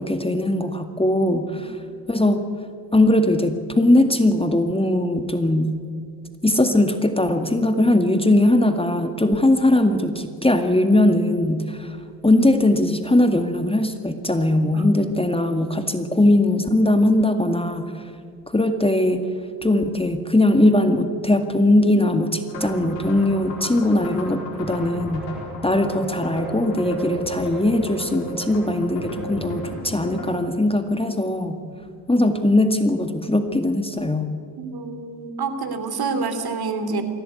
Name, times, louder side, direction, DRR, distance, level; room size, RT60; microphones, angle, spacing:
voice 1, 0.0-1.8 2.1-2.5 2.9-5.7 6.4-12.0 12.2-18.0 18.5-19.2 19.6-25.3 25.6-31.6 32.1-34.3, left 1 dB, 10° left, 7 dB, 1.9 m, -20 dB
sound 1, 22.5-30.3, equal, 90° left, 4.4 m, -34 dB
voice 2, 34.6-37.0, right 4 dB, 50° right, 9 dB, 3.3 m, -28 dB
22.5 x 16.5 x 9.6 m, 2.2 s
hypercardioid pair, 60°, 49 cm